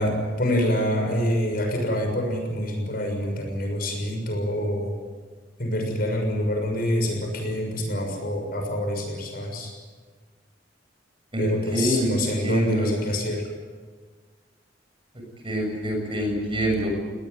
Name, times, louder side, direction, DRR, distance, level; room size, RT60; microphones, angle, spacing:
voice 1, 0.0-4.9 5.6-9.7 11.4-13.5, equal, 55° left, 3 dB, 6.6 m, -26 dB
voice 2, 11.3-12.1 12.4-12.9 15.4-16.9, right 1 dB, 30° right, 1 dB, 7.3 m, -25 dB
21.0 x 19.5 x 9.7 m, 1.4 s
head